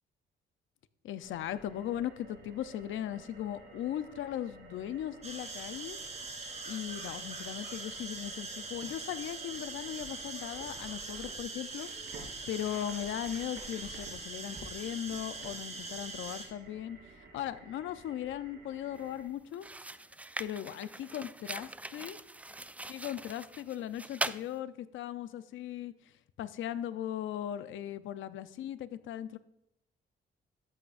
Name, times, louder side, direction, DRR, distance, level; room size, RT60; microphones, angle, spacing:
voice 1, 1.0-6.0 6.6-11.9 12.1-17.0 17.3-19.7 20.4-22.2 22.9-25.9 26.4-29.4, left 11 dB, 75° left, 13 dB, 0.6 m, -38 dB
sound 1, 1.2-19.2, right 3 dB, 70° right, 3.4 m, -53 dB
sound 2, 5.2-16.5, right 4 dB, 35° right, 3.5 m, -42 dB
sound 3, 18.9-19.1 19.5-24.5, right 2 dB, 5° right, 0.3 m, -41 dB
13.0 x 8.6 x 2.6 m, 0.83 s
cardioid pair, 90°, 20 cm